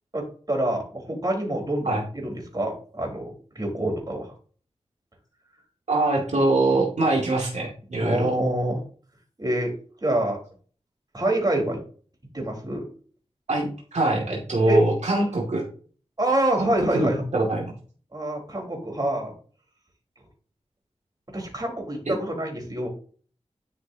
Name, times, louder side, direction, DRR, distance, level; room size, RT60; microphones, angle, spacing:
voice 1, 0.1-4.3 8.0-8.8 9.4-9.7 10.0-10.4 11.1-11.8 12.3-12.9 14.7-14.8 16.2-17.2 18.1-19.3 21.3-22.9, right 1 dB, 35° right, 0 dB, 4.3 m, -26 dB
voice 2, 5.9-8.3 13.5-15.6 16.6-17.7 22.1-22.2, right 2 dB, 85° right, -2 dB, 2.4 m, -23 dB
11.5 x 6.4 x 2.9 m, 0.42 s
wide cardioid pair, 65°, 12 cm